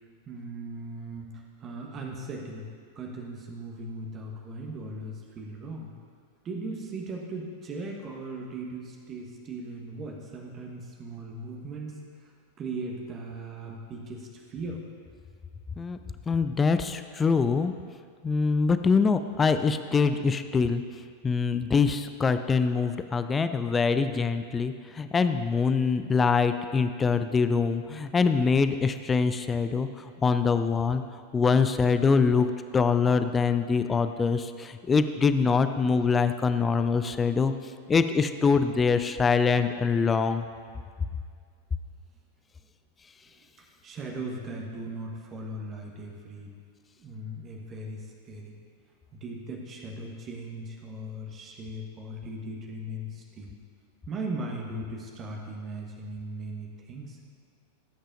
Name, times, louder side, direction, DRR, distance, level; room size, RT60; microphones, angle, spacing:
voice 1, 0.3-1.3 1.6-2.7 2.9-5.9 6.4-14.8 43.3-46.5 47.0-48.6 49.1-53.5 54.1-57.2, right 2 dB, 30° right, 0 dB, 1.3 m, -38 dB
voice 2, 16.3-17.7 18.2-20.8 21.2-31.0 31.3-32.5 32.7-37.5 37.9-40.4, left 5 dB, 15° left, 10 dB, 0.4 m, -24 dB
18.0 x 8.8 x 2.6 m, 2.1 s
figure-of-eight pair, 90°, 0 cm